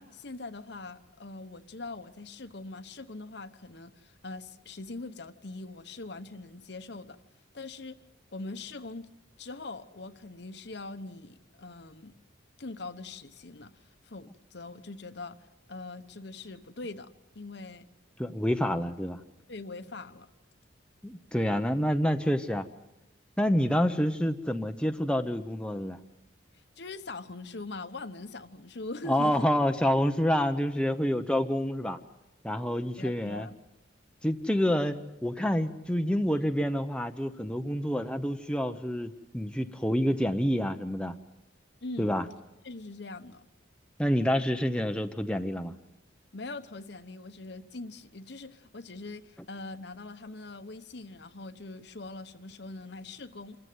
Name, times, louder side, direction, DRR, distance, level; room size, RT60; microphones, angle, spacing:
voice 1, 0.0-7.2 7.5-8.0 8.3-9.1 9.4-12.2 12.6-15.4 15.7-17.9 19.5-20.3 26.8-29.4 33.0-33.6 41.8-42.1 42.6-43.4 46.3-53.6, left 3 dB, 60° left, 10 dB, 1.0 m, -42 dB
voice 2, 18.2-19.2 21.0-22.7 23.4-26.0 29.1-32.0 32.4-33.5 34.2-41.1 42.0-42.2 44.0-45.7, equal, 5° left, 6 dB, 0.7 m, -28 dB
26.5 x 14.5 x 9.4 m, 0.95 s
head